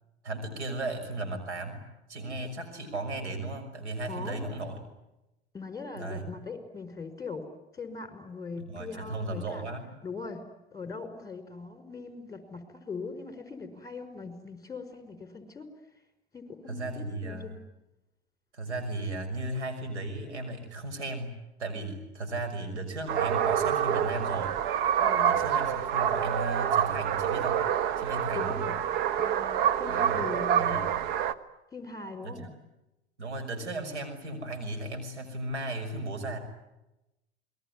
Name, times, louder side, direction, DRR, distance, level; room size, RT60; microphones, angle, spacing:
voice 1, 0.2-1.8 2.1-4.8 6.0-6.3 8.7-10.0 16.7-17.6 18.5-21.3 21.6-24.6 25.2-27.6 28.0-28.6 29.9-30.2 30.6-31.0 32.2-32.4 33.2-36.4, right 2 dB, 90° right, 6 dB, 6.0 m, -35 dB
voice 2, 4.1-4.4 5.5-7.5 7.7-9.7 10.0-15.7 16.3-17.6 25.0-25.4 28.3-28.8 29.2-30.9 31.7-32.5, left 4 dB, 10° left, 8 dB, 5.2 m, -40 dB
sound 1, 23.1-31.3, right 9 dB, 65° right, 1.4 m, -27 dB
28.0 x 21.5 x 9.7 m, 0.95 s
hypercardioid pair, 90°, 33 cm